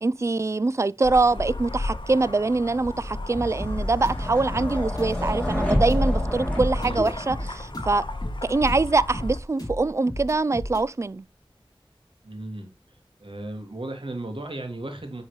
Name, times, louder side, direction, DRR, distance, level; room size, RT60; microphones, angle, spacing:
voice 1, 0.0-8.0 8.4-11.2, right 3 dB, 30° right, 0.3 m, -24 dB
sound 1, 1.0-9.4, left 2 dB, 60° left, 1.1 m, -34 dB
sound 2, 2.8-7.7, left 1 dB, 15° left, 2.9 m, -28 dB
sound 3, 3.6-10.9, left 1 dB, 45° left, 2.5 m, -35 dB
voice 2, 6.8-7.2 12.2-12.7 13.2-15.2, right 1 dB, 70° right, 1.9 m, -35 dB
9.9 x 3.9 x 3.1 m
wide cardioid pair, 45°, 9 cm